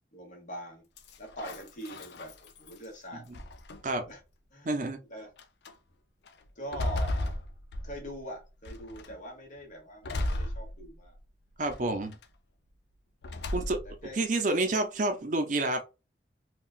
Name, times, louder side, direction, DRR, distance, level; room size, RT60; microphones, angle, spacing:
voice 1, 0.1-0.8 1.2-3.2 3.8-4.2 4.5-4.7 5.1-5.3 6.5-7.4 7.8-11.2 14.0-14.2 15.1-15.2, right 1 dB, 45° left, 1.2 m, -43 dB
sound 1, 1.0-2.8 3.3-4.1 4.8-4.9 5.4-5.7 6.3-8.2 8.6-9.2 10.0-11.2 11.6-12.2 13.2-14.0, left 1 dB, 70° left, 0.5 m, -35 dB
voice 2, 4.6-5.0 11.6-12.2 13.5-13.8 14.1-15.8, right 2 dB, 45° right, 0.6 m, -29 dB
3.8 x 2.3 x 2.4 m
head